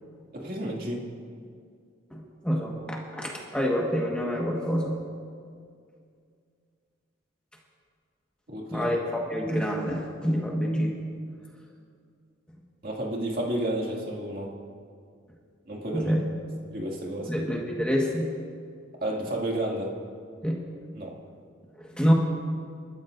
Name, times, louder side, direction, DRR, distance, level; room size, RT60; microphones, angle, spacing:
voice 1, 0.3-1.1 8.5-8.9 12.8-14.5 15.7-16.1 16.7-17.4 19.0-20.0 20.9-21.2, right 1 dB, 45° right, -1 dB, 2.3 m, -31 dB
voice 2, 2.1-5.0 8.7-11.0 15.9-16.2 17.3-18.4 20.4-20.6 21.8-22.1, equal, 5° left, -2 dB, 1.5 m, -27 dB
28.5 x 13.5 x 2.6 m, 2.2 s
head